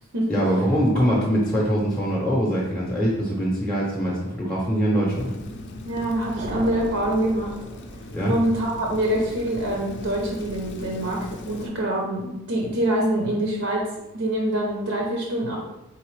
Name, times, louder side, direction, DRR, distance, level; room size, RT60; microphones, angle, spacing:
voice 1, 0.3-5.3 8.1-8.3, equal, 5° left, -4 dB, 0.6 m, -23 dB
Rain, 5.1-11.7, left 1 dB, 50° left, 0.4 m, -38 dB
voice 2, 5.8-7.5 8.2-13.9 14.1-15.6, right 1 dB, 70° right, -1 dB, 0.7 m, -25 dB
sound 1, 6.4-8.6, right 2 dB, 35° right, 0.3 m, -36 dB
3.8 x 3.7 x 3.2 m, 0.97 s
head